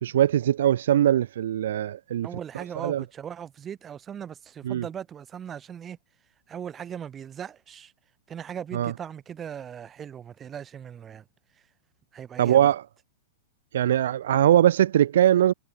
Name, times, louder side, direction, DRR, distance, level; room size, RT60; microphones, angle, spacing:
voice 1, 0.0-2.3 2.8-3.0 4.6-4.8 8.7-8.9 12.4-12.8 13.7-15.5, right 11 dB, 75° right, 1.4 m, -21 dB
voice 2, 2.2-6.0 6.5-7.9 8.3-11.2 12.1-12.6, right 8 dB, 20° right, 3.5 m, -38 dB
hypercardioid pair, 140°, 0 cm